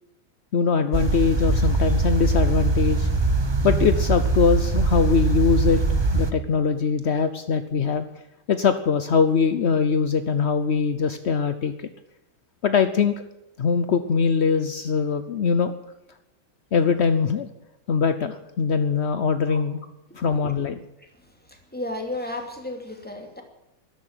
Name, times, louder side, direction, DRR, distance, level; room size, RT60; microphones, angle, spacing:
voice 1, 0.5-3.1 3.6-8.1 8.5-11.9 12.6-13.2 13.6-15.7 16.7-17.5 17.9-19.8 20.1-20.8, left 5 dB, 60° left, 10 dB, 0.6 m, -22 dB
sound 1, 0.9-6.3, right 3 dB, 30° right, 0.5 m, -22 dB
voice 2, 21.7-23.4, left 1 dB, 5° left, 3 dB, 2.6 m, -33 dB
13.5 x 11.5 x 9.0 m, 0.91 s
omnidirectional pair, 2.2 m